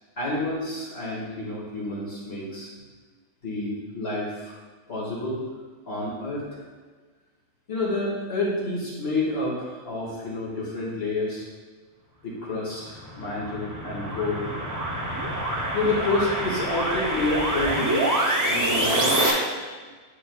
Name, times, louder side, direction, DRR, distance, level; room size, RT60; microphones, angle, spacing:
voice 1, 0.2-2.7 3.4-4.6 4.9-5.4 5.9-6.6 7.7-11.5 12.2-14.5 15.7-19.2, left 2 dB, 45° left, -6 dB, 2.1 m, -29 dB
sound 1, 12.8-19.3, right 1 dB, 20° right, 0.5 m, -26 dB
9.8 x 4.9 x 2.3 m, 1.4 s
omnidirectional pair, 1.5 m